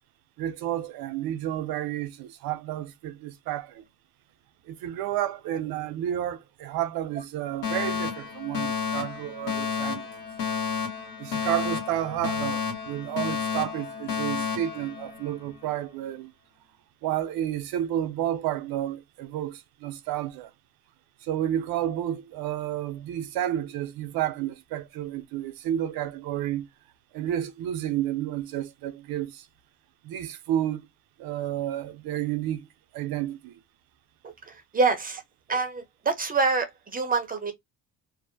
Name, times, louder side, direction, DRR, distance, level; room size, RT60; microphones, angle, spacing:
voice 1, 0.4-3.8 4.7-10.1 11.2-16.3 17.0-20.5 21.2-26.7 27.1-29.5 30.0-30.9 31.2-32.7 32.9-33.6, right 12 dB, 80° right, 0.6 m, -31 dB
Alarm, 7.6-15.6, left 6 dB, 75° left, 1.1 m, -31 dB
voice 2, 34.2-35.2 35.5-37.5, right 4 dB, 25° right, 0.6 m, -26 dB
2.5 x 2.0 x 2.6 m
cardioid pair, 125°, 35 cm